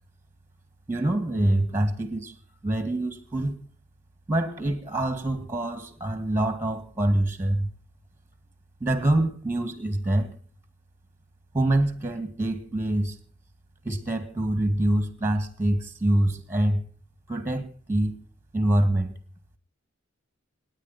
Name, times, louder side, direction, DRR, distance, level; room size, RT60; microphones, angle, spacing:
voice 1, 0.9-2.3 2.6-3.6 4.3-7.7 8.8-10.3 11.5-13.2 13.8-16.8 17.3-18.1 18.5-19.1, right 1 dB, 10° right, 2.2 m, -25 dB
28.0 x 10.0 x 4.4 m
head